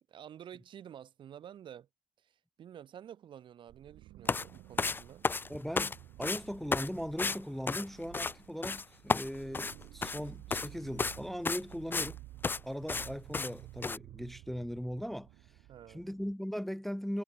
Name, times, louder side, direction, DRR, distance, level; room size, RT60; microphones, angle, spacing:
voice 1, 0.1-1.9 2.2-5.2 15.7-16.0, right 9 dB, 45° right, 4.5 m, -50 dB
sound 1, 3.7-16.3, right 17 dB, 80° right, 6.0 m, -53 dB
sound 2, 4.3-4.5 4.8-6.0 6.2-6.4 6.7-6.9 7.2-7.4 7.7-8.3 8.6-8.8 9.1-10.2 10.5-10.7 11.0-11.2 11.5-12.1 12.4-12.6 12.9-13.1 13.3-13.5 13.8-14.0, left 4 dB, 20° left, 1.0 m, -32 dB
voice 2, 5.5-12.2 12.6-15.3 15.9-17.2, equal, ahead, 0.5 m, -39 dB
cardioid pair, 130°, 11 cm